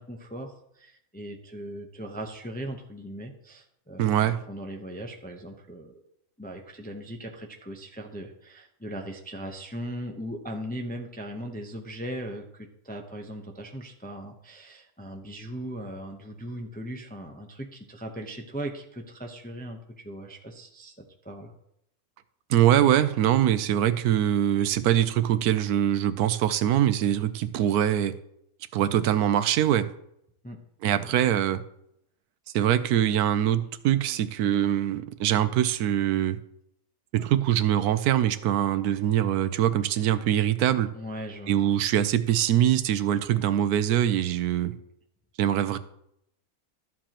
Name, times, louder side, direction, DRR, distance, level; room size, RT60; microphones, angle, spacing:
voice 1, 0.0-6.0 6.4-19.8 20.0-21.5 30.4-30.6 31.0-31.1 40.9-41.5, right 1 dB, 10° left, 3 dB, 0.4 m, -39 dB
voice 2, 4.0-4.4 22.5-28.1 28.7-29.9 30.8-31.6 32.5-36.4 37.1-40.9 41.5-44.8 45.4-45.8, right 11 dB, 85° right, 13 dB, 1.1 m, -23 dB
12.5 x 7.5 x 2.9 m, 0.77 s
omnidirectional pair, 1.6 m